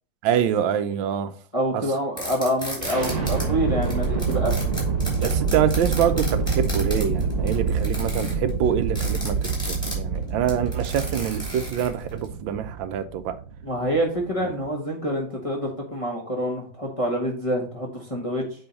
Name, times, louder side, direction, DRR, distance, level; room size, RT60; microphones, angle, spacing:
voice 1, 0.2-1.3 1.7-1.9 5.2-13.4 14.4-14.5, right 9 dB, 85° right, 1.4 m, -25 dB
voice 2, 1.5-4.5 5.2-5.3 13.6-18.4, equal, 20° left, 1.1 m, -26 dB
sound 1, 2.2-3.4 3.8-12.2, equal, ahead, 3.4 m, -34 dB
sound 2, 2.8-14.7, right 5 dB, 45° right, 1.4 m, -27 dB
8.0 x 3.7 x 4.1 m
omnidirectional pair, 2.1 m